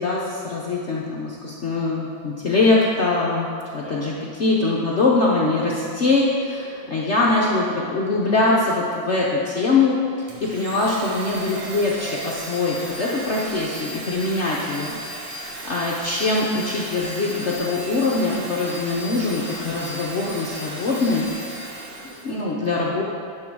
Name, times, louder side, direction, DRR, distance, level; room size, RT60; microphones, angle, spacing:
voice 1, 0.0-15.0 15.6-21.3 22.2-23.0, left 3 dB, 90° left, -5 dB, 0.6 m, -22 dB
voice 2, 3.8-4.2 6.6-6.9 15.3-16.0 21.5-22.2, right 2 dB, 25° right, -3 dB, 0.9 m, -46 dB
Domestic sounds home sounds, 10.3-22.4, right 1 dB, 85° right, 2.2 m, -35 dB
10.0 x 3.8 x 6.1 m, 2.4 s
omnidirectional pair, 2.3 m